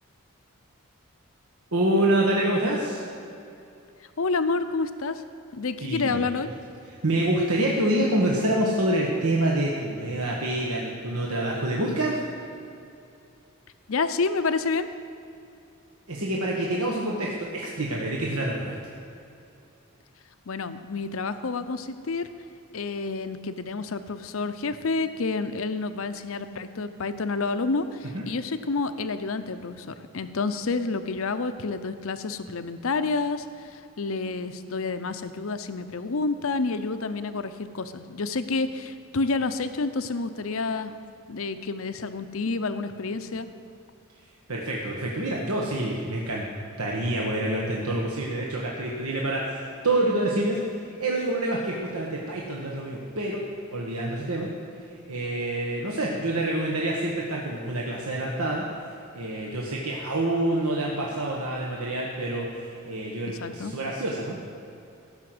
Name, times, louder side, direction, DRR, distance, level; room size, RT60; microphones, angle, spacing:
voice 1, 1.7-3.0 5.8-6.5 7.0-12.2 16.1-18.7 28.1-28.2 44.5-46.5 46.8-53.4 53.7-54.5 54.9-58.6 59.1-64.4, right 1 dB, 80° right, -2 dB, 1.4 m, -27 dB
voice 2, 4.2-5.2 5.5-6.5 13.9-14.9 20.5-22.3 22.7-40.9 41.3-43.5 63.3-63.8, left 3 dB, 65° left, 10 dB, 0.7 m, -29 dB
16.0 x 6.5 x 7.8 m, 2.6 s
head